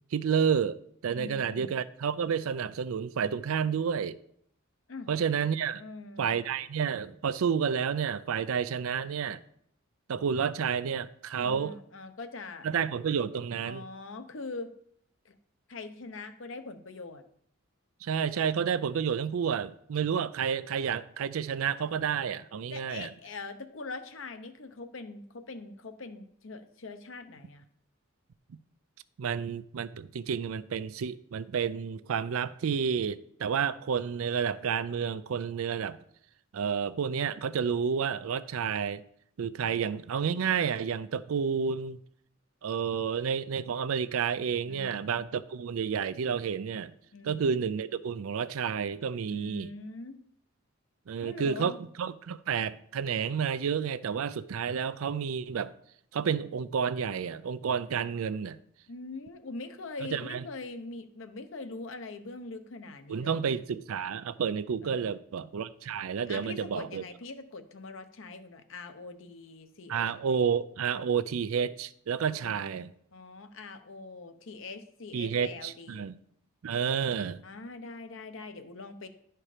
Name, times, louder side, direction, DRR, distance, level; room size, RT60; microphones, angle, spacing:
voice 1, 0.1-0.8 1.0-4.2 5.1-5.8 6.2-9.4 10.1-11.7 12.6-13.8 18.0-23.1 29.2-36.0 36.5-39.0 39.4-42.0 42.6-46.9 47.2-49.7 51.1-55.7 56.1-58.6 60.1-60.4 63.1-67.0 69.9-72.9 75.1-76.2 76.6-77.4, right 7 dB, 90° right, 0.4 m, -30 dB
voice 2, 1.1-1.8 4.9-5.1 5.8-6.3 11.4-12.7 13.6-14.7 15.2-15.3 15.7-17.2 22.7-27.7 44.7-45.1 47.1-47.5 49.3-50.2 51.2-51.8 58.9-63.4 64.8-65.2 66.3-70.4 72.3-72.7 73.1-76.1 77.4-79.1, left 3 dB, 65° left, 0.8 m, -43 dB
11.0 x 4.5 x 4.9 m
head